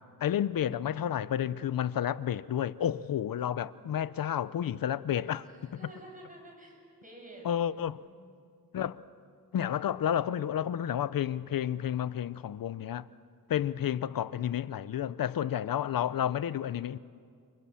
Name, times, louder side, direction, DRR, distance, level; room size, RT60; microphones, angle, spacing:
voice 1, 0.2-5.8 7.4-8.0 8.7-9.0 9.5-13.1 13.5-17.0, left 10 dB, 75° left, 0.7 m, -31 dB
voice 2, 5.4-8.5, right 1 dB, 25° right, 7.4 m, -52 dB
29.0 x 28.5 x 7.1 m
wide cardioid pair, 140°, 35 cm